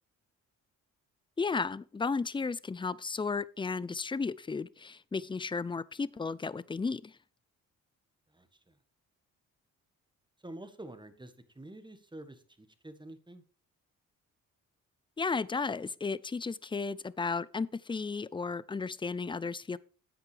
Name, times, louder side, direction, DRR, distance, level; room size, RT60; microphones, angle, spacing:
voice 1, 1.4-7.2 15.2-19.8, left 4 dB, 15° left, 0.4 m, -34 dB
voice 2, 8.3-8.7 10.4-13.4, right 1 dB, 15° right, 1.5 m, -48 dB
11.0 x 8.0 x 3.3 m
supercardioid pair, 60°, 34 cm